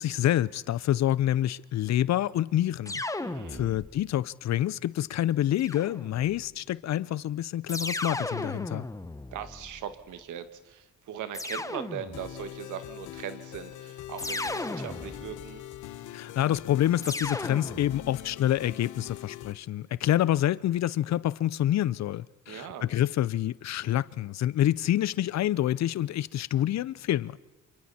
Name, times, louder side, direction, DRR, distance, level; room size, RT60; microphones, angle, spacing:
voice 1, 0.0-3.0 3.5-8.8 16.1-27.4, left 12 dB, 60° left, 0.7 m, -27 dB
sound 1, 2.8-4.1 5.6-6.4 7.7-10.0 11.3-12.5 14.2-15.5 17.0-18.2, left 2 dB, 10° left, 1.0 m, -36 dB
voice 2, 3.2-3.8 9.3-15.6 22.5-22.9, right 9 dB, 80° right, 1.9 m, -40 dB
sound 2, 12.1-19.5, left 13 dB, 85° left, 1.1 m, -43 dB
28.0 x 27.5 x 4.3 m
cardioid pair, 90°, 30 cm